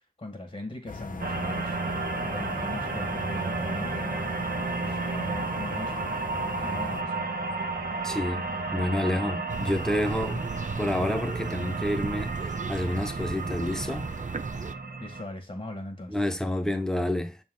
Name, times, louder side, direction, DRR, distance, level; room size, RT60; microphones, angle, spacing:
voice 1, 0.2-1.8 2.2-4.2 4.8-6.0 6.4-7.3 15.0-16.2, left 1 dB, 45° left, 1.9 m, -39 dB
sound 1, 0.9-7.0, left 4 dB, 60° left, 0.8 m, -39 dB
sound 2, 1.2-15.2, right 3 dB, 75° right, 1.2 m, -33 dB
voice 2, 8.0-8.5 8.7-10.5 10.8-14.1 16.1-17.4, left 1 dB, 5° left, 1.2 m, -29 dB
sound 3, 9.5-14.8, right 4 dB, 55° right, 0.6 m, -35 dB
6.9 x 4.5 x 3.8 m
wide cardioid pair, 55°, 15 cm